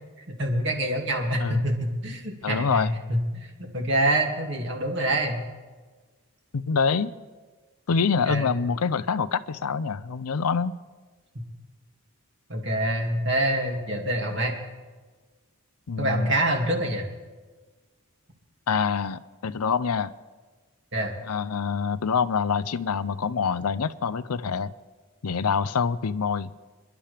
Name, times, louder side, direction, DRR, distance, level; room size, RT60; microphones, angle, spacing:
voice 1, 0.4-5.4 8.3-8.6 12.5-14.5 16.0-17.1 20.9-21.1, right 1 dB, 50° right, 1 dB, 2.4 m, -26 dB
voice 2, 2.4-2.9 6.5-7.1 7.9-10.7 15.9-16.4 18.7-20.1 21.3-24.7 25.2-26.5, left 5 dB, 85° left, 16 dB, 0.6 m, -26 dB
27.0 x 11.5 x 3.4 m, 1.3 s
head